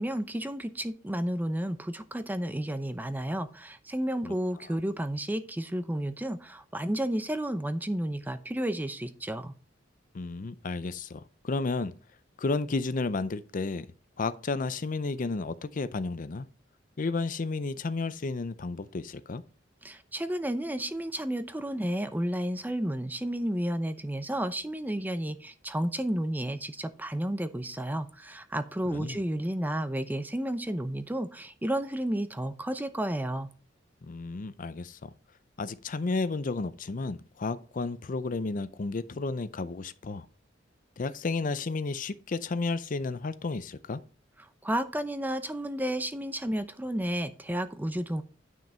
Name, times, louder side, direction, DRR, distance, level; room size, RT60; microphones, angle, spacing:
voice 1, 0.0-9.5 19.8-33.5 44.6-48.2, right 1 dB, 10° right, 0.7 m, -32 dB
voice 2, 10.1-11.9 12.4-13.9 14.2-16.5 17.0-19.4 28.9-29.2 34.1-35.1 35.6-40.3 41.0-44.0, left 3 dB, 45° left, 0.5 m, -32 dB
9.6 x 6.1 x 4.3 m
head